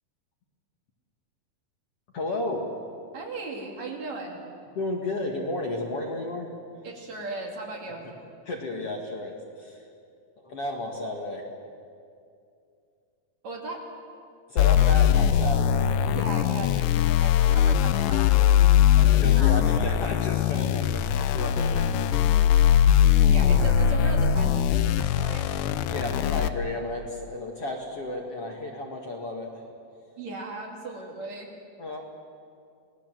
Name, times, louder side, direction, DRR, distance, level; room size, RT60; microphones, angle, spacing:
voice 1, 2.1-2.7 4.8-6.5 8.5-9.8 10.4-11.4 14.5-15.9 18.9-22.4 23.5-23.6 25.9-29.7 31.8-32.0, left 2 dB, 45° left, 0 dB, 2.5 m, -33 dB
voice 2, 3.1-4.4 6.8-8.0 13.4-13.8 16.1-19.5 23.2-25.5 30.2-31.5, right 2 dB, 50° right, 0 dB, 3.7 m, -37 dB
sound 1, 14.6-26.5, left 10 dB, 75° left, 2.2 m, -21 dB
28.0 x 19.5 x 7.6 m, 2.5 s
omnidirectional pair, 4.3 m